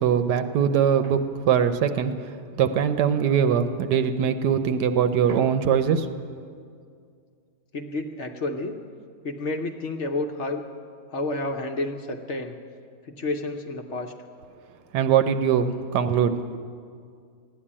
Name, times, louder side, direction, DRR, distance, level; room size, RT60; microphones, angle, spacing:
voice 1, 0.0-2.1 2.6-6.1 14.9-16.4, right 8 dB, 80° right, 9 dB, 1.3 m, -22 dB
voice 2, 7.7-8.7 9.2-10.6 11.1-12.6 13.0-14.1, left 2 dB, 50° left, 4 dB, 1.0 m, -30 dB
15.0 x 10.5 x 8.6 m, 2.2 s
omnidirectional pair, 1.8 m